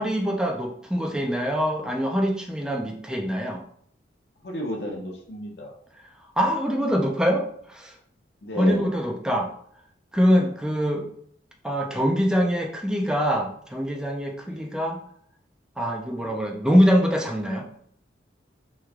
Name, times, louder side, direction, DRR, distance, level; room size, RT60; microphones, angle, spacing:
voice 1, 0.0-3.6 6.4-7.9 8.6-9.5 10.1-11.1 11.6-15.0 15.8-17.7, equal, 5° right, 1 dB, 0.3 m, -24 dB
voice 2, 4.4-5.7 8.4-8.9 14.5-14.7 16.1-16.4, equal, 70° left, 0 dB, 0.7 m, -32 dB
3.1 x 2.2 x 3.6 m, 0.63 s
head